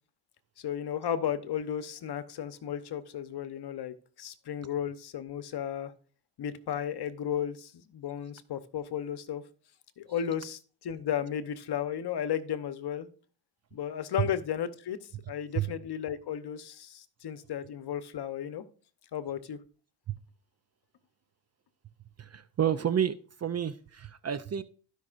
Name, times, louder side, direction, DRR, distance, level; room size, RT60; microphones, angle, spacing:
voice 1, 0.6-5.9 6.4-9.4 10.0-13.1 13.7-15.0 15.3-18.6 19.1-19.6, left 9 dB, 50° left, 1.0 m, -34 dB
voice 2, 22.2-24.6, right 9 dB, 35° right, 0.5 m, -30 dB
16.0 x 5.5 x 2.5 m
supercardioid pair, 70°, 50 cm